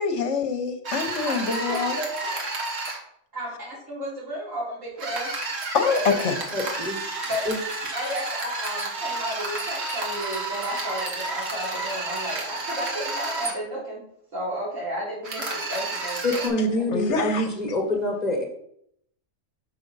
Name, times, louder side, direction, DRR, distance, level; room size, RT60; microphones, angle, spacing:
voice 1, 0.0-2.0 5.7-6.3 16.9-17.5, left 5 dB, 65° left, 6 dB, 1.1 m, -25 dB
sound 1, 0.8-3.0 5.0-13.5 15.2-16.5, right 2 dB, 60° right, 1.8 m, -31 dB
voice 2, 1.2-2.4 3.3-5.3 5.9-6.3 7.2-7.5 7.9-14.0 14.3-16.4 16.8-16.9, equal, 75° right, -6 dB, 3.6 m, -33 dB
voice 3, 6.5-7.0 7.4-7.6 16.2-18.4, left 1 dB, 35° left, 1 dB, 1.2 m, -25 dB
6.4 x 4.8 x 5.3 m, 0.72 s
omnidirectional pair, 1.3 m